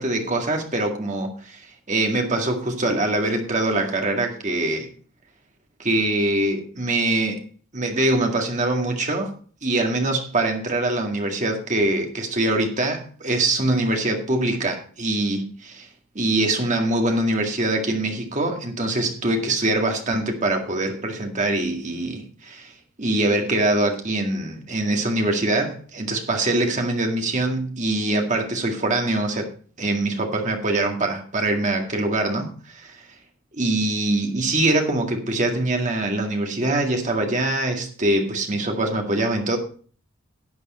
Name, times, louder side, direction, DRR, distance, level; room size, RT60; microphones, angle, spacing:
voice 1, 0.0-4.9 5.8-7.4 7.7-9.3 9.6-15.9 16.2-22.7 23.0-29.5 29.8-33.0 33.6-39.6, right 2 dB, 35° right, 2.0 m, -23 dB
11.5 x 8.4 x 4.2 m
head